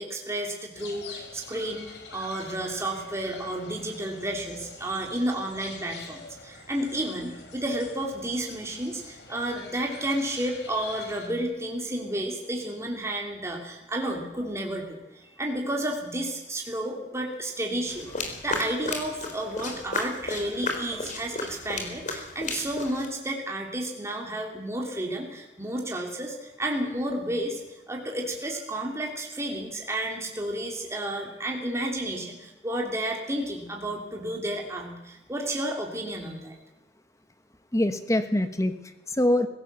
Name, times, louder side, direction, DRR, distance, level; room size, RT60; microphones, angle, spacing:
voice 1, 0.0-27.6 27.9-36.5, right 1 dB, 15° right, 0 dB, 2.9 m, -31 dB
sound 1, 0.7-11.3, left 4 dB, 70° left, 4.0 m, -45 dB
voice 2, 9.3-9.7 20.9-21.0 37.7-39.5, left 1 dB, 20° left, 9 dB, 1.2 m, -26 dB
sound 2, 17.9-23.1, left 3 dB, 45° left, 4.0 m, -34 dB
23.5 x 16.5 x 6.8 m, 0.95 s
head